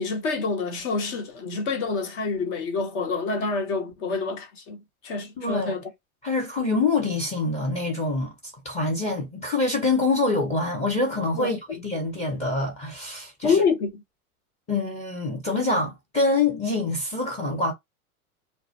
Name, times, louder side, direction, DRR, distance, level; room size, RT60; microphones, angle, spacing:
voice 1, 0.0-5.8 11.3-11.5 13.4-14.0, left 4 dB, 50° left, 1.0 m, -27 dB
voice 2, 5.4-5.7 6.2-8.3 8.6-13.6 14.7-17.7, left 3 dB, 15° left, 0.7 m, -25 dB
2.1 x 2.1 x 2.7 m
hypercardioid pair, 105°, 44 cm